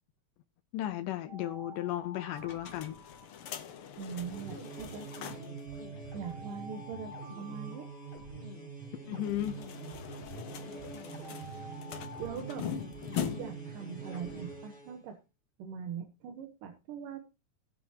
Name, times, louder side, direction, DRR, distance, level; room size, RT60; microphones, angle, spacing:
voice 1, 0.7-3.0 9.1-9.6, left 13 dB, 85° left, 2.3 m, -35 dB
Alarm, 1.3-3.9 5.2-8.9 10.2-13.4, equal, 70° right, 4.1 m, -51 dB
sound 1, 2.4-5.6 5.9-6.0 6.3-6.4 9.1-13.7, left 8 dB, 65° left, 1.4 m, -42 dB
sound 2, 3.9-15.0, right 3 dB, 15° left, 2.8 m, -45 dB
voice 2, 4.0-5.0 6.1-7.9 12.2-12.7 13.4-15.2 15.6-17.2, right 7 dB, 90° right, 2.8 m, -41 dB
18.0 x 7.7 x 2.9 m
omnidirectional pair, 3.7 m